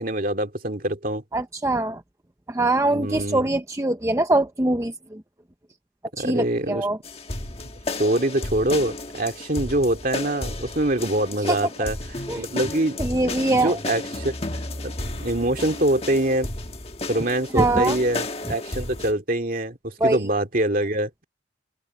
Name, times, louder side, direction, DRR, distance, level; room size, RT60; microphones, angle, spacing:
voice 1, 0.0-1.2 2.8-3.5 6.2-6.9 8.0-12.0 12.4-13.0 13.5-14.3 14.8-16.5 17.1-21.1, right 1 dB, 45° right, 2.4 m, -24 dB
voice 2, 1.3-2.0 2.5-5.2 6.2-7.0 11.5-11.6 12.3-12.4 13.0-13.8 17.5-18.0 20.0-20.2, right 2 dB, 15° right, 0.7 m, -23 dB
sound 1, 7.0-19.1, left 2 dB, 30° left, 1.5 m, -33 dB
open air
head